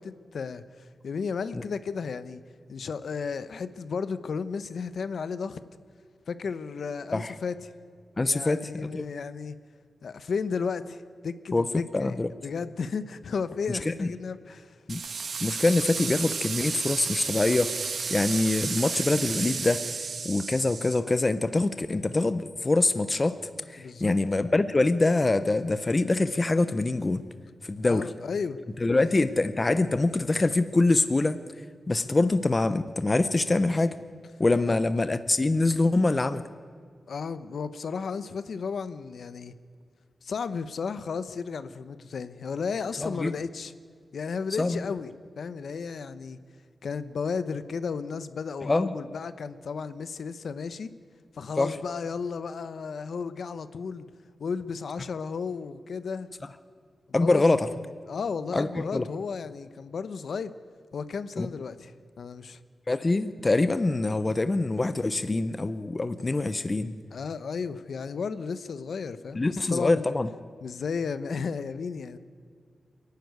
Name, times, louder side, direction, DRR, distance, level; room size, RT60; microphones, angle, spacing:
voice 1, 0.0-2.4 2.7-5.6 6.3-7.7 8.3-9.6 10.0-14.8 23.8-24.2 27.8-28.6 28.9-29.0 34.7-34.8 37.1-39.5 40.2-43.7 44.1-45.1 45.4-46.4 46.8-50.9 51.3-54.1 54.4-56.3 57.2-57.5 58.1-60.5 60.9-62.6 67.1-70.1 70.6-72.2, left 5 dB, 65° left, 13 dB, 0.9 m, -34 dB
voice 2, 8.2-9.0 11.5-11.7 11.9-12.3 13.7-14.1 14.9-15.0 15.4-19.9 20.2-27.2 27.6-28.1 28.8-31.4 31.9-34.0 34.4-36.4 43.0-43.3 44.6-44.8 48.6-48.9 51.6-51.8 57.1-57.7 58.5-59.1 61.4-61.5 62.9-66.9 69.4-70.3, left 2 dB, 25° left, 12 dB, 0.6 m, -25 dB
sound 1, 14.9-21.0, right 5 dB, 60° right, 1.4 m, -32 dB
27.0 x 11.5 x 9.4 m, 2.1 s
wide cardioid pair, 170°, 0 cm